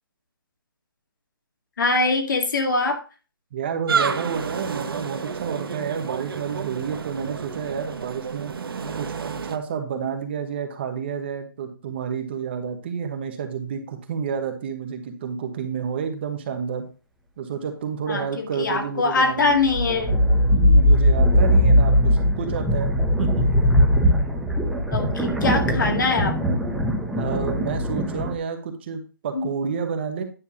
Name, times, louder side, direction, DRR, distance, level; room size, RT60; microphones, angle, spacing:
voice 1, 1.8-3.0 18.1-20.1 24.9-26.6 29.3-29.5, left 3 dB, 60° left, 4 dB, 2.0 m, -23 dB
voice 2, 3.5-8.5 9.0-9.1 9.4-16.8 17.4-19.6 20.5-22.9 23.2-23.4 27.1-30.2, right 7 dB, 30° right, 6 dB, 1.2 m, -30 dB
sound 1, 3.9-9.6, right 6 dB, 85° right, 1.2 m, -30 dB
sound 2, 19.5-28.3, equal, ahead, 0.9 m, -20 dB
10.0 x 3.4 x 7.0 m, 0.33 s
hypercardioid pair, 170°, 12 cm